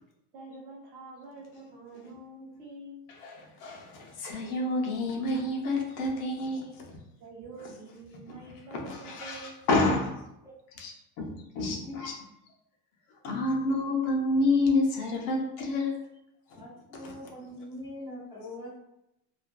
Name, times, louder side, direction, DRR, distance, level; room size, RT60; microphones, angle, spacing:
voice 1, 0.3-3.0 7.2-9.5, right 2 dB, 45° right, -3 dB, 0.7 m, -46 dB
voice 2, 3.2-6.9 8.3-8.4 8.7-10.2 10.7-12.3 13.2-16.0 16.5-16.6 16.9-17.1, left 2 dB, 75° left, 1 dB, 0.8 m, -29 dB
voice 3, 16.5-18.8, left 1 dB, 10° right, -12 dB, 0.4 m, -42 dB
2.5 x 2.4 x 2.2 m, 0.84 s
supercardioid pair, 175°, 46 cm